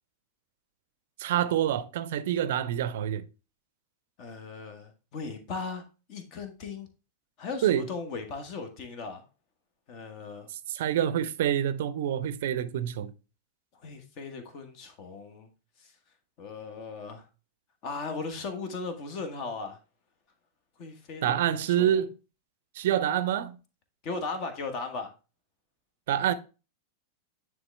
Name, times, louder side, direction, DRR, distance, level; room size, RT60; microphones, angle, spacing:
voice 1, 1.2-3.2 7.6-7.9 10.7-13.1 21.2-22.2 22.8-23.6 26.1-26.3, right 10 dB, 55° right, 0.5 m, -27 dB
voice 2, 4.2-5.8 6.1-6.9 7.4-9.2 9.9-10.5 13.8-15.5 15.8-15.9 16.4-17.2 17.8-19.8 20.8-22.0 24.0-25.1, left 4 dB, 40° left, 1.4 m, -37 dB
9.6 x 3.6 x 3.3 m
figure-of-eight pair, 90°, 0 cm